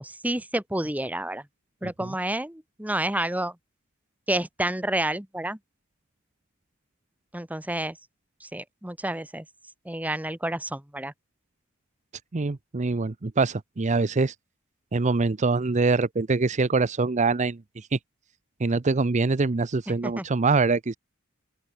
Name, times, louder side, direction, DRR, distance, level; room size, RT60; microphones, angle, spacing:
voice 1, 0.0-1.4 1.8-3.5 4.3-5.6 7.3-8.0 8.4-9.4 9.8-11.1 19.9-20.3, right 1 dB, 10° right, 1.5 m, -29 dB
voice 2, 12.3-14.3 14.9-18.0 18.6-21.0, right 3 dB, 35° right, 0.6 m, -24 dB
open air
head